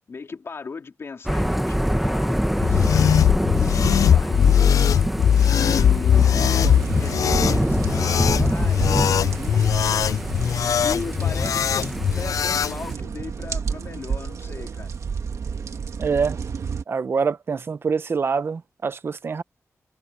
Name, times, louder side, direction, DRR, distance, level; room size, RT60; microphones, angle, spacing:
voice 1, 0.1-4.9 5.5-10.2 10.8-14.9, left 5 dB, 50° left, 3.0 m, -37 dB
Thunder / Rain, 1.3-12.9, equal, 5° right, 1.0 m, -26 dB
sound 1, 2.6-12.7, left 9 dB, 80° left, 0.4 m, -20 dB
sound 2, 6.4-16.8, right 6 dB, 65° right, 1.4 m, -31 dB
voice 2, 15.9-16.4 16.9-19.4, right 5 dB, 45° right, 0.7 m, -25 dB
wide cardioid pair, 160°, 6 cm